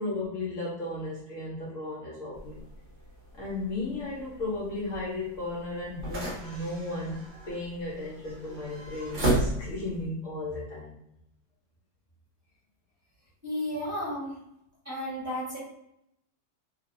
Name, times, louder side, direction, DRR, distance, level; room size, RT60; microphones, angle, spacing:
voice 1, 0.0-2.6 3.3-10.9, left 2 dB, 60° left, -5 dB, 1.0 m, -35 dB
sound 1, 2.3-10.1, right 1 dB, 50° right, 0.6 m, -35 dB
voice 2, 13.4-14.4 14.8-15.6, left 1 dB, 10° right, -10 dB, 1.1 m, -33 dB
2.9 x 2.8 x 2.5 m, 0.78 s
omnidirectional pair, 1.7 m